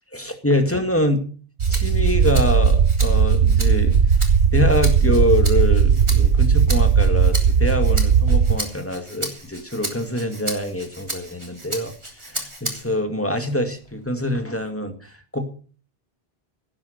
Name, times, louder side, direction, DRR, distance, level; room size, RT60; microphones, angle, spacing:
voice 1, 0.1-1.2 1.7-4.0 4.5-11.9 12.2-15.5, left 1 dB, 15° left, 6 dB, 2.2 m, -25 dB
Rattle (instrument), 1.6-13.0 13.5-14.7, right 1 dB, 30° right, 3.3 m, -35 dB
sound 1, 1.6-8.6, right 6 dB, 75° right, 1.2 m, -17 dB
17.0 x 9.9 x 6.7 m, 0.41 s
omnidirectional pair, 1.0 m